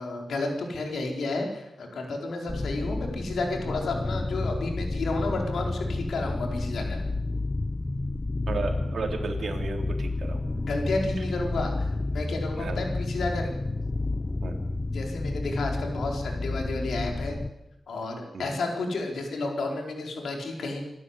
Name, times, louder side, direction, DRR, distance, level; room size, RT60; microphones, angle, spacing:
voice 1, 0.0-7.0 10.6-13.5 14.9-17.4 17.9-20.8, left 2 dB, 85° left, 2 dB, 4.6 m, -31 dB
sound 1, 2.5-17.5, left 2 dB, 20° left, 0.8 m, -30 dB
voice 2, 8.5-10.4 12.6-12.8 14.4-14.6 18.3-18.5, right 4 dB, 60° right, 2 dB, 3.7 m, -33 dB
26.5 x 12.5 x 8.3 m, 0.88 s
wide cardioid pair, 115°, 0 cm